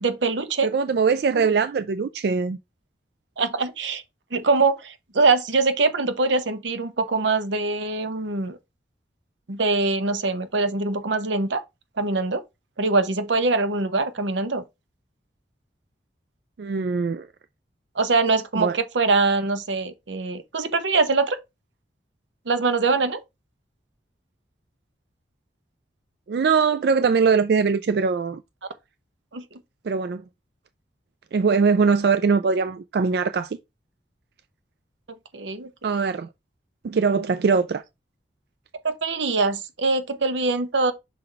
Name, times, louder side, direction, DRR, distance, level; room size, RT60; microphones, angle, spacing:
voice 1, 0.0-0.7 1.3-1.5 3.4-4.0 4.3-8.6 9.5-11.6 12.0-12.4 12.8-14.6 18.0-21.4 22.5-23.2 29.3-29.4 35.3-35.7 38.8-40.9, right 3 dB, 85° right, 0.9 m, -23 dB
voice 2, 0.6-2.6 16.6-17.3 18.6-18.8 26.3-28.4 29.8-30.2 31.3-33.6 35.8-36.3 36.8-37.8, right 5 dB, 60° right, 0.3 m, -21 dB
5.8 x 3.9 x 4.6 m
head